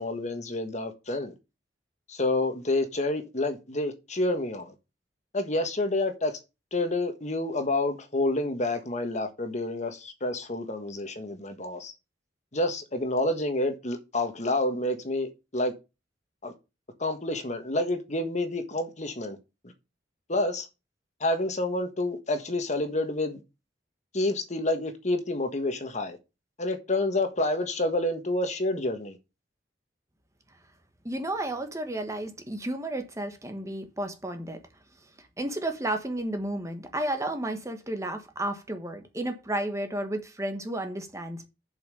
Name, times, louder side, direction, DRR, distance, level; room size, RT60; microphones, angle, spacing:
voice 1, 0.0-1.3 2.1-4.7 5.3-6.4 6.7-11.9 12.5-15.7 16.4-16.5 17.0-19.4 20.3-20.7 21.2-23.4 24.1-26.2 26.6-29.2, left 2 dB, 40° left, 1.5 m, -28 dB
voice 2, 31.0-34.6 35.2-41.5, right 1 dB, 15° right, 1.3 m, -32 dB
7.3 x 5.7 x 6.8 m
head